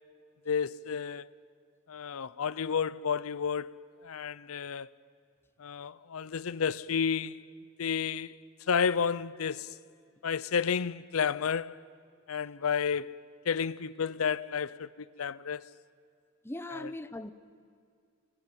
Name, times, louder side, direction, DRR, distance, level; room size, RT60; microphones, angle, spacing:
voice 1, 0.5-1.3 1.9-3.7 4.0-4.9 5.6-7.4 7.8-8.3 8.7-9.7 10.2-11.8 12.3-13.1 13.5-14.9 15.2-15.6 16.7-16.9, left 6 dB, 80° left, 0.6 m, -31 dB
voice 2, 16.4-17.3, left 1 dB, 10° left, 0.8 m, -39 dB
30.0 x 20.0 x 9.3 m
head